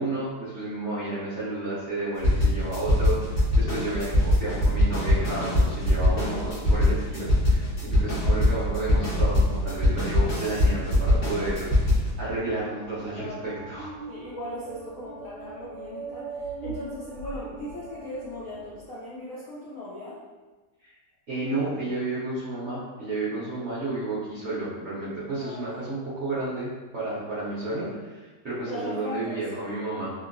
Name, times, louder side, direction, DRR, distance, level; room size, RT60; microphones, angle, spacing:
voice 1, 0.0-7.7 7.9-13.9 20.8-20.9 21.3-30.1, right 2 dB, 60° right, -10 dB, 0.7 m, -31 dB
sound 1, 2.2-12.1, left 1 dB, 40° left, 1.0 m, -22 dB
voice 2, 7.2-7.7 13.1-13.5 14.1-20.2 23.3-23.5 25.4-25.8 28.7-29.7, left 1 dB, 70° left, -8 dB, 0.8 m, -39 dB
sound 2, 12.8-18.9, right 4 dB, 90° right, 1.3 m, -40 dB
2.8 x 2.7 x 2.5 m, 1.3 s
omnidirectional pair, 2.0 m